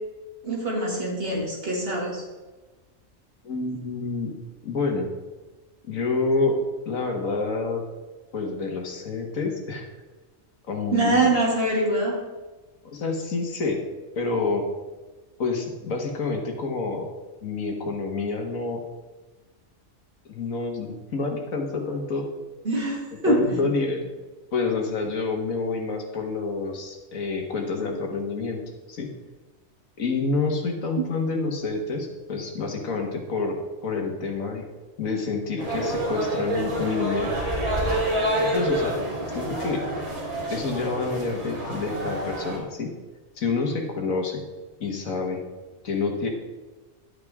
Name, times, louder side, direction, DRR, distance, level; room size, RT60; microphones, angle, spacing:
voice 1, 0.4-2.2 10.9-12.2 22.6-23.6 31.0-31.1, right 2 dB, 45° right, -3 dB, 2.8 m, -24 dB
voice 2, 3.4-4.3 4.6-5.1 5.9-6.6 6.9-7.8 8.3-9.9 10.7-11.3 12.8-13.8 14.2-14.7 15.4-17.1 17.4-18.8 20.3-22.3 23.2-24.1 24.5-28.6 28.9-29.1 30.0-33.6 33.8-34.7 35.0-37.4 38.4-39.0 39.3-39.9 40.5-42.9 43.4-44.4 44.8-45.4 45.8-46.3, left 4 dB, 80° left, 3 dB, 1.9 m, -28 dB
sound 1, 35.6-42.6, right 1 dB, 85° right, 3.4 m, -28 dB
11.5 x 8.9 x 3.6 m, 1.2 s
omnidirectional pair, 1.4 m